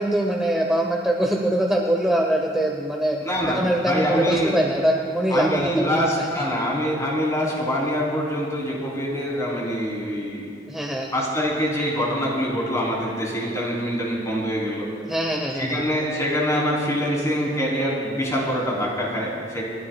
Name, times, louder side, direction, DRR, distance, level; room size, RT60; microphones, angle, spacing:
voice 1, 0.0-6.4 10.7-11.1 15.1-15.8, right 1 dB, 5° right, 0 dB, 0.8 m, -23 dB
voice 2, 3.2-4.6 5.3-10.5 11.1-14.9 15.6-19.6, equal, 20° left, -4 dB, 3.1 m, -24 dB
29.5 x 12.0 x 2.3 m, 2.5 s
head